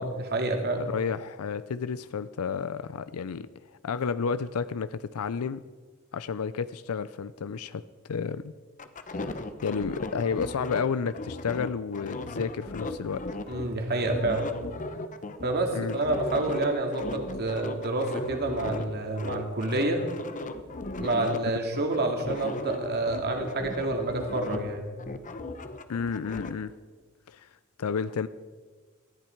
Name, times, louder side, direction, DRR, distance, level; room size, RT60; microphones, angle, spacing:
voice 1, 0.0-0.9 13.5-14.5 15.4-20.0 21.0-24.9, right 2 dB, 50° right, 3 dB, 2.4 m, -28 dB
voice 2, 0.8-3.5 3.8-5.6 6.1-7.8 8.1-8.5 9.6-13.2 15.7-16.0 25.9-26.7 27.3-27.5 27.8-28.3, left 6 dB, 75° left, 15 dB, 0.5 m, -31 dB
sound 1, 8.8-13.7 14.0-18.9 19.2-21.4 21.7-24.7 25.0-26.5, left 2 dB, 35° left, 0.9 m, -37 dB
19.0 x 14.0 x 4.5 m, 1.4 s
head